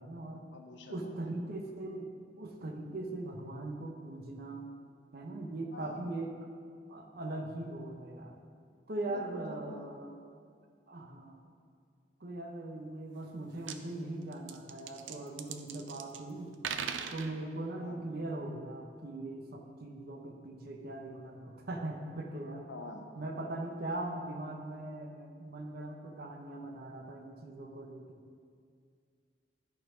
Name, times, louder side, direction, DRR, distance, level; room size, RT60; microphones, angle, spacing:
voice 1, 0.0-0.4 0.9-2.1 2.4-4.7 5.1-6.3 6.9-8.3 8.9-10.2 10.9-11.5 12.2-16.6 17.1-22.7 23.2-28.2, right 2 dB, 55° right, 2 dB, 0.9 m, -40 dB
voice 2, 0.5-1.4 5.7-6.1 9.1-9.9 17.8-18.0 22.7-23.1, left 2 dB, 70° left, 4 dB, 0.7 m, -47 dB
sound 1, 13.2-13.3 13.5-13.8 14.3-16.2 16.5-17.3, right 7 dB, 85° right, 0.5 m, -39 dB
11.0 x 4.4 x 5.0 m, 2.2 s
head